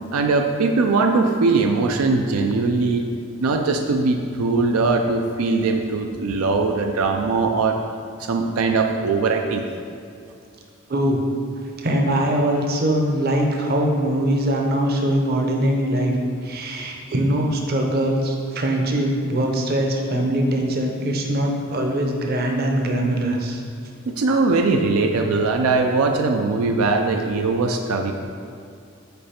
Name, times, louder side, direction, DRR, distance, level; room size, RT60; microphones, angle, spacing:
voice 1, 0.1-3.1 3.4-7.8 8.2-9.6 24.1-28.1, right 3 dB, 90° right, 4 dB, 0.4 m, -20 dB
voice 2, 10.9-11.2 11.8-16.2 16.4-23.6, right 1 dB, 45° right, 1 dB, 0.7 m, -22 dB
5.3 x 4.7 x 4.3 m, 2.4 s
head